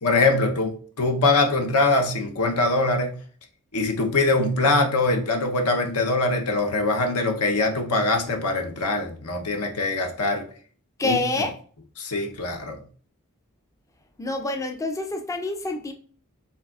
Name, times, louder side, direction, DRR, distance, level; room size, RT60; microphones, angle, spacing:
voice 1, 0.0-3.1 3.7-10.4 11.0-11.2 12.0-12.8, left 2 dB, 80° left, 4 dB, 0.8 m, -23 dB
voice 2, 11.0-11.5 14.2-15.9, left 2 dB, 15° left, 5 dB, 0.4 m, -27 dB
5.6 x 3.4 x 2.4 m, 0.43 s
head